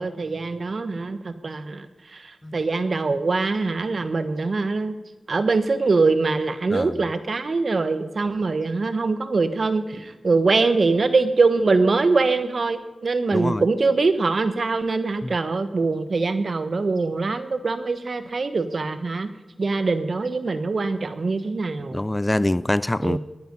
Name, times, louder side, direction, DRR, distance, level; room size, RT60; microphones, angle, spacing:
voice 1, 0.0-4.9 5.3-19.3 19.6-22.0 23.0-23.2, right 3 dB, 65° right, 1.3 m, -23 dB
voice 2, 13.3-13.6 15.2-15.4 21.9-23.2, left 1 dB, 20° left, 0.4 m, -24 dB
20.5 x 10.5 x 5.4 m
wide cardioid pair, 65°, 0 cm